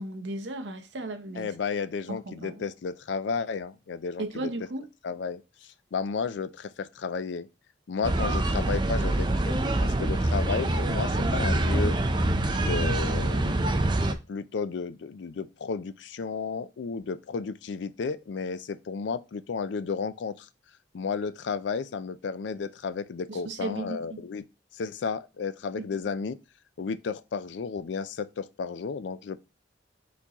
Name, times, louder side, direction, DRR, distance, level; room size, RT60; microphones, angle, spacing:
voice 1, 0.0-1.5 2.1-2.6 4.2-4.9 23.3-24.2 25.8-25.9, right 2 dB, 70° right, 0.8 m, -35 dB
voice 2, 1.4-4.5 5.0-5.4 5.9-7.5 7.9-12.0 12.5-20.5 20.9-24.5 24.7-26.4 26.8-29.4, left 5 dB, 70° left, 0.4 m, -33 dB
sound 1, 8.0-14.1, right 1 dB, 25° right, 0.5 m, -25 dB
4.4 x 4.2 x 2.9 m
head